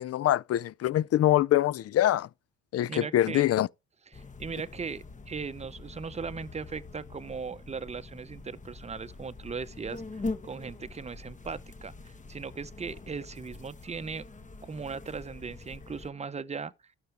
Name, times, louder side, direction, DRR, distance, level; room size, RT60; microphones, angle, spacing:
voice 1, 0.0-2.3 2.7-3.7, left 13 dB, 55° left, 0.5 m, -24 dB
voice 2, 2.9-3.5 4.1-14.2 14.6-16.7, right 5 dB, 20° right, 0.8 m, -38 dB
sound 1, 4.1-16.1, left 3 dB, 25° left, 1.4 m, -43 dB
12.5 x 6.9 x 3.4 m
cardioid pair, 90°, 30 cm